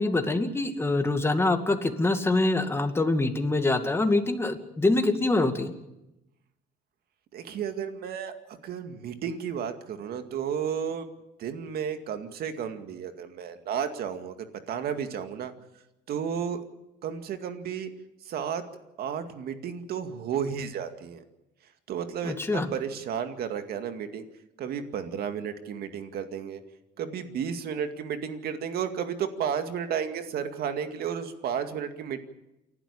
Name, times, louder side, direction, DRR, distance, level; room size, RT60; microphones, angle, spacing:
voice 1, 0.0-5.7 22.2-22.7, left 2 dB, 15° left, 6 dB, 2.3 m, -25 dB
voice 2, 7.3-8.3 8.6-11.0 11.4-15.5 16.1-16.6 17.0-17.9 18.2-18.6 19.0-21.2 21.9-24.2 24.6-26.6 27.0-32.2, right 7 dB, 65° right, 8 dB, 2.2 m, -32 dB
28.5 x 12.0 x 8.7 m, 0.92 s
cardioid pair, 110°, 17 cm